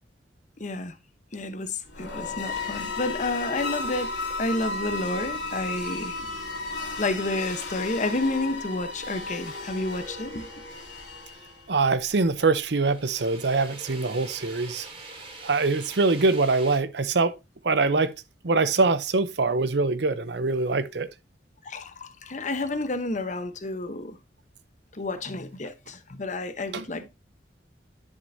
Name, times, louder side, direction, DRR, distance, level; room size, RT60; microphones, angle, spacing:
voice 1, 0.6-0.9 1.3-4.1 4.4-6.3 7.0-10.5 21.6-24.2 24.9-27.1, left 2 dB, 40° left, 1.0 m, -30 dB
sound 1, 1.9-11.8, left 3 dB, 90° left, 3.2 m, -34 dB
sound 2, 7.6-7.7 12.4-16.8, right 2 dB, 30° right, 2.8 m, -44 dB
voice 2, 11.7-14.9 15.4-17.4 17.6-18.1 18.4-21.1 26.7-26.9, right 3 dB, 70° right, 0.7 m, -23 dB
10.5 x 6.6 x 2.7 m
head